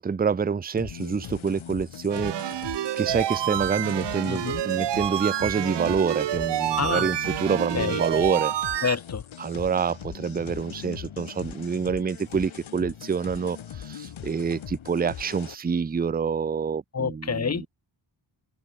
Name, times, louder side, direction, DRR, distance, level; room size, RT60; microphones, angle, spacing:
voice 1, 0.0-2.7 3.0-8.5 9.4-17.7, right 6 dB, 20° right, 0.5 m, -27 dB
sound 1, 0.8-15.6, left 9 dB, 75° left, 1.8 m, -40 dB
sound 2, 2.1-9.0, right 12 dB, 60° right, 0.6 m, -28 dB
voice 2, 4.3-4.6 6.7-7.1 7.7-8.0 8.8-9.2 16.9-17.7, left 6 dB, 30° left, 1.2 m, -28 dB
open air
wide cardioid pair, 170°, 48 cm